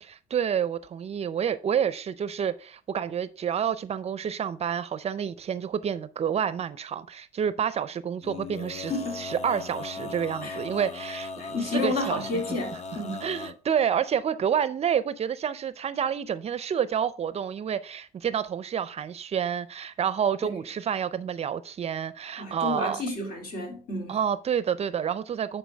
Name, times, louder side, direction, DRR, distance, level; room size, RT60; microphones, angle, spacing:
voice 1, 0.0-12.4 13.2-23.0 24.1-25.6, right 8 dB, 40° right, 0.5 m, -29 dB
Male singing, 8.2-13.5, left 4 dB, 40° left, 0.7 m, -38 dB
voice 2, 8.9-9.2 10.4-10.6 11.4-13.2 20.4-20.5 22.4-24.2, left 2 dB, 65° left, 3.3 m, -31 dB
10.5 x 4.5 x 3.4 m
cardioid pair, 110°, 17 cm